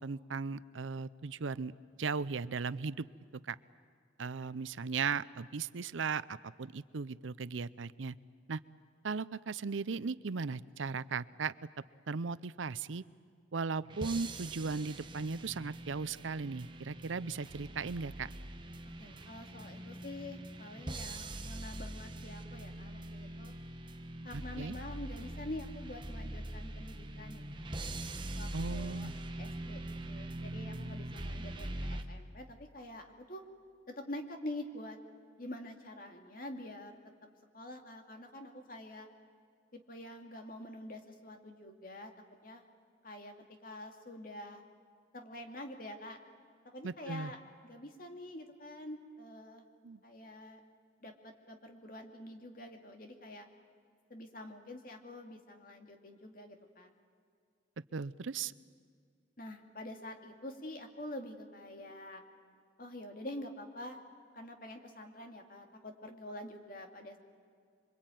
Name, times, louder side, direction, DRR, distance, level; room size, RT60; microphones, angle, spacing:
voice 1, 0.0-1.7 2.0-3.1 3.5-3.6 4.2-8.1 8.5-8.6 9.0-11.5 12.1-13.0 13.5-18.3 24.3-24.7 28.5-29.1 46.8-47.3 49.8-50.0 57.9-58.5, right 5 dB, 90° right, 17 dB, 0.6 m, -37 dB
sound 1, 13.8-32.0, right 1 dB, 25° right, 1.2 m, -43 dB
voice 2, 19.0-23.5 24.2-27.7 28.4-29.1 29.4-29.8 30.1-33.4 33.9-35.0 35.4-37.0 37.5-39.1 39.7-42.1 42.4-42.6 43.0-43.3 43.6-44.6 45.1-46.2 46.6-47.4 47.6-49.6 50.0-50.6 51.0-53.5 54.1-56.9 59.4-62.2 62.8-64.0 64.3-67.2, left 1 dB, 45° left, 4 dB, 2.5 m, -46 dB
27.0 x 23.5 x 9.2 m, 2.2 s
head